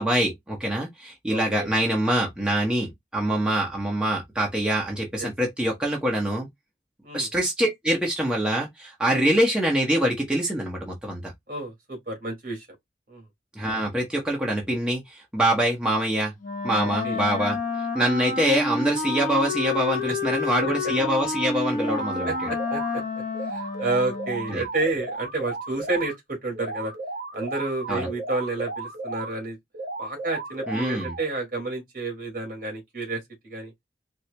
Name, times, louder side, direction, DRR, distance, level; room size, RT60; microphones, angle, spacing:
voice 1, 0.0-6.5 7.1-11.3 13.6-16.3 16.6-17.6 17.9-22.5 24.5-24.6 27.9-28.1 30.7-31.1, right 1 dB, 5° right, 0.8 m, -25 dB
voice 2, 1.3-1.7 5.2-5.3 7.0-7.3 11.5-12.7 13.1-13.2 17.0-17.2 20.8-20.9 22.5-23.0 23.5-26.9 27.3-29.6 30.0-33.7, right 2 dB, 50° right, 1.7 m, -30 dB
Wind instrument woodwind instrument, 16.4-24.7, left 4 dB, 50° left, 0.8 m, -29 dB
sound 1, 21.7-22.9 23.3-26.1 26.5-29.3 29.7-31.3, right 2 dB, 70° right, 1.2 m, -35 dB
4.3 x 2.0 x 3.2 m
head